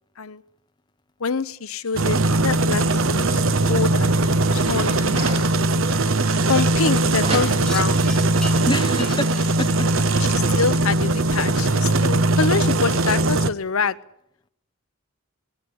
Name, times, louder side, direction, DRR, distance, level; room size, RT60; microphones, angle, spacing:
voice 1, 1.2-3.4 3.7-4.2 4.5-5.3 6.5-8.0 10.1-14.0, left 5 dB, 75° left, 15 dB, 0.8 m, -26 dB
sound 1, 2.0-13.5, right 2 dB, 65° right, 1.0 m, -20 dB
sound 2, 4.4-6.8 7.1-7.9, right 2 dB, 30° right, 4.7 m, -33 dB
Wind chime, 7.6-12.3, left 3 dB, 5° left, 2.8 m, -41 dB
voice 2, 8.6-10.1, left 2 dB, 20° left, 9 dB, 1.0 m, -28 dB
19.5 x 17.5 x 9.8 m, 0.79 s
head